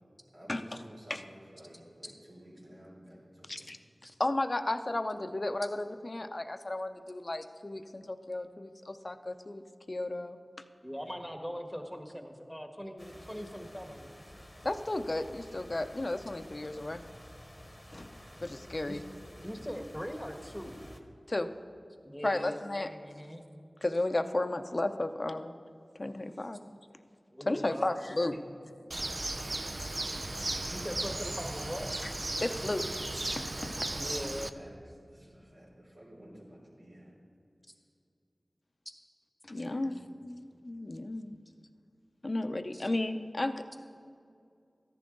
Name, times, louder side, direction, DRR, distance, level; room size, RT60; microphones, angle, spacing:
voice 1, 0.3-3.7 11.0-11.2 34.2-37.2 39.5-40.1, equal, 70° right, -4 dB, 3.4 m, -53 dB
voice 2, 4.2-10.4 14.6-17.0 17.9-19.0 21.3-21.5 22.2-22.9 23.8-25.5 26.0-26.6 27.5-28.4 32.0-32.1 32.4-32.9 33.4-34.0 39.4-41.4 42.2-43.8, left 2 dB, 50° left, 9 dB, 0.6 m, -34 dB
voice 3, 10.8-14.1 18.8-19.0 19.4-20.8 22.0-23.4 27.3-28.0 28.3-28.5 30.7-31.9 33.9-34.5 42.7-42.9, equal, ahead, 4 dB, 1.5 m, -41 dB
sound 1, 13.0-21.0, equal, 20° left, 1.2 m, -51 dB
Bird, 28.9-34.5, right 2 dB, 50° right, 0.5 m, -36 dB
14.0 x 10.5 x 3.9 m, 2.4 s
wide cardioid pair, 40°, 0 cm